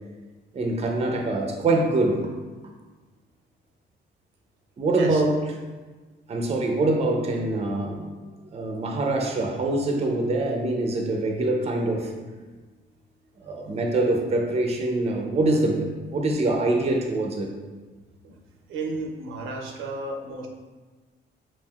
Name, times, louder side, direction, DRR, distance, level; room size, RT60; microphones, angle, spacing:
voice 1, 0.5-2.2 4.8-5.3 6.3-8.0 8.5-12.1 13.4-17.5, right 2 dB, 30° right, 2 dB, 0.5 m, -24 dB
voice 2, 18.7-20.5, right 3 dB, 85° right, 1 dB, 0.6 m, -33 dB
5.2 x 2.5 x 2.3 m, 1.3 s
cardioid pair, 90°, 20 cm